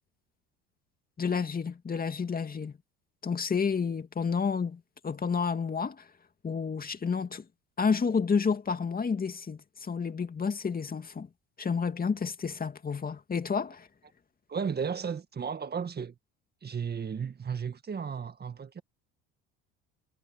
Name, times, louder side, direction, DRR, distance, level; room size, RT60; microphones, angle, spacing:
voice 1, 1.2-2.7 3.2-6.1 6.4-7.4 7.8-11.3 11.6-13.9, left 5 dB, 25° left, 2.5 m, -30 dB
voice 2, 14.5-16.1 16.6-18.8, right 6 dB, 30° right, 1.8 m, -34 dB
supercardioid pair, 80°, 32 cm